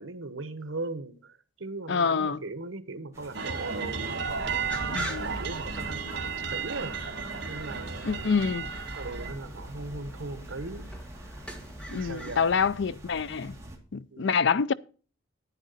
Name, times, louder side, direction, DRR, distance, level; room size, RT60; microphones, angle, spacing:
voice 1, 0.0-7.0 7.4-8.5 8.9-10.9 11.9-12.7 14.1-14.4, right 3 dB, 85° right, 1.2 m, -39 dB
voice 2, 1.9-2.4 4.9-5.3 8.0-8.7 11.9-13.5 13.9-14.7, left 5 dB, 60° left, 0.5 m, -26 dB
sound 1, 3.1-13.8, right 1 dB, 15° right, 2.3 m, -47 dB
sound 2, 3.3-9.3, right 6 dB, 60° right, 1.7 m, -34 dB
sound 3, 4.7-12.4, equal, 5° left, 1.8 m, -41 dB
10.0 x 9.9 x 4.1 m
head